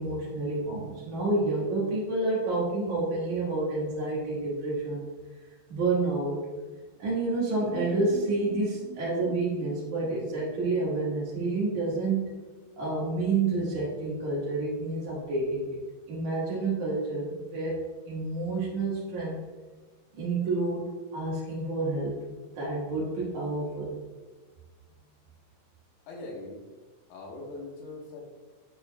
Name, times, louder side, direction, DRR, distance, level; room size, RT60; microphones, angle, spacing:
voice 1, 0.0-5.0 5.7-6.4 7.0-12.4 12.8-15.8 16.1-17.8 18.1-19.4 20.1-22.2 22.5-23.9, right 3 dB, 85° right, -7 dB, 1.7 m, -29 dB
sound 1, 7.4-11.2 11.5-11.6 11.9-12.0, right 6 dB, 65° right, 2.6 m, -44 dB
voice 2, 24.9-25.3 26.1-26.6 27.1-28.2, left 2 dB, 80° left, -3 dB, 3.8 m, -42 dB
10.5 x 4.6 x 2.2 m, 1.3 s
omnidirectional pair, 5.9 m